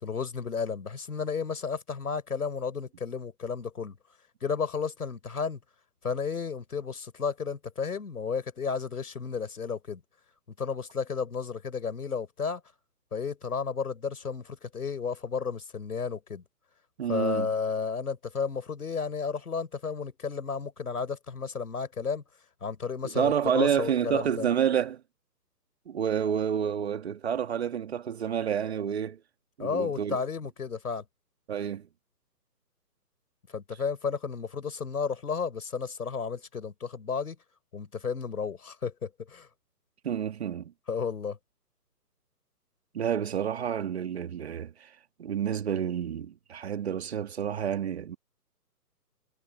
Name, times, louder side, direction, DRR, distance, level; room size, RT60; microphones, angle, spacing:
voice 1, 0.0-4.0 4.4-5.6 6.0-10.0 10.6-12.6 13.1-16.4 17.1-22.2 22.6-24.5 29.6-31.0 33.5-37.4 37.7-39.5 40.9-41.4, left 5 dB, 60° left, 4.1 m, -32 dB
voice 2, 17.0-17.5 23.0-25.0 25.9-29.2 29.6-30.2 31.5-31.9 40.0-40.7 42.9-44.9 45.2-48.2, right 8 dB, 40° right, 2.1 m, -29 dB
figure-of-eight pair, 145°, 49 cm